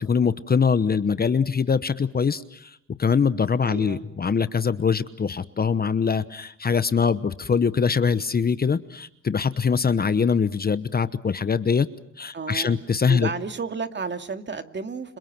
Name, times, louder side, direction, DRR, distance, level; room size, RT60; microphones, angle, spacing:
voice 1, 0.0-11.9 12.2-13.3, left 6 dB, 30° left, 14 dB, 1.0 m, -23 dB
voice 2, 3.6-4.1 12.3-15.2, right 5 dB, 35° right, 7 dB, 2.5 m, -32 dB
30.0 x 27.5 x 6.1 m, 0.76 s
cardioid pair, 90°, 30 cm